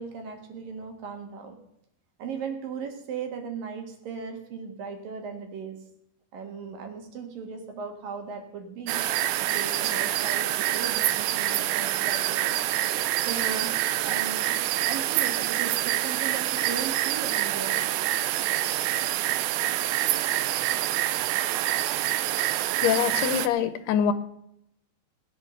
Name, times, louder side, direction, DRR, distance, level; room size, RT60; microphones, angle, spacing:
voice 1, 0.0-1.6 2.2-5.8 6.3-9.0 9.5-12.6 13.2-13.8 14.0-14.6 14.9-17.8, right 5 dB, 60° right, 4 dB, 3.3 m, -37 dB
sound 1, 8.9-23.5, right 14 dB, 90° right, 2.9 m, -26 dB
voice 2, 22.8-24.1, left 9 dB, 80° left, 12 dB, 2.7 m, -24 dB
18.5 x 9.1 x 6.5 m, 0.77 s
omnidirectional pair, 4.8 m